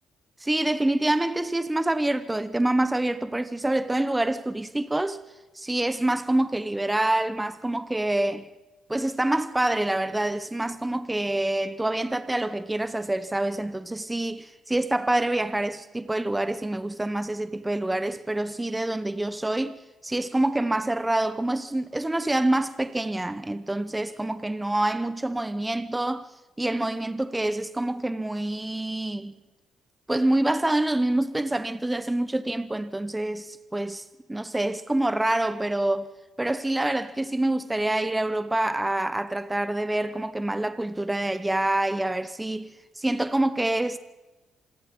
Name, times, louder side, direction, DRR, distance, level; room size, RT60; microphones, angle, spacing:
voice 1, 0.4-5.2 5.5-8.5 8.9-26.3 26.6-29.3 30.1-34.0 34.3-36.1 36.4-44.0, right 1 dB, 10° right, 1.0 m, -26 dB
26.5 x 20.0 x 5.4 m
cardioid pair, 90°, 0 cm